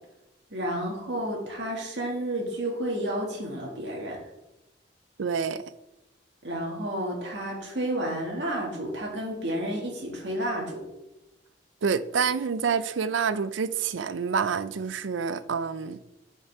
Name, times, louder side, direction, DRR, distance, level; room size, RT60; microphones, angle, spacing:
voice 1, 0.5-4.2 6.4-10.8, right 1 dB, 60° right, -2 dB, 2.0 m, -31 dB
voice 2, 5.2-5.6 11.8-16.0, right 6 dB, 80° right, 14 dB, 0.5 m, -27 dB
10.5 x 5.5 x 3.5 m, 0.94 s
head